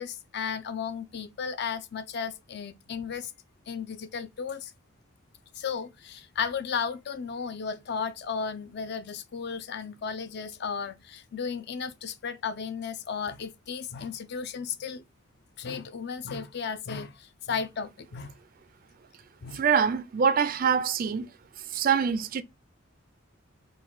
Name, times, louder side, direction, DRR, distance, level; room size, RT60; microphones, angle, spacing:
voice 1, 0.0-3.3 3.7-4.7 5.5-15.0 15.6-18.3 19.4-19.6, left 6 dB, 55° left, 0.4 m, -34 dB
voice 2, 19.5-21.3 21.7-22.4, right 6 dB, 45° right, 0.3 m, -24 dB
3.9 x 2.2 x 4.4 m
head